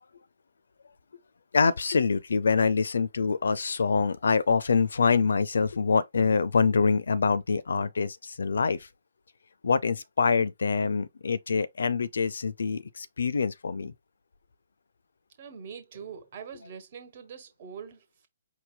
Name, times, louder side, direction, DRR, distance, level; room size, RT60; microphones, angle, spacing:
voice 1, 1.5-8.9 9.6-13.9, left 5 dB, 65° left, 0.4 m, -25 dB
voice 2, 15.4-18.3, right 7 dB, 45° right, 1.2 m, -43 dB
5.0 x 2.1 x 3.8 m
figure-of-eight pair, 130°, 0 cm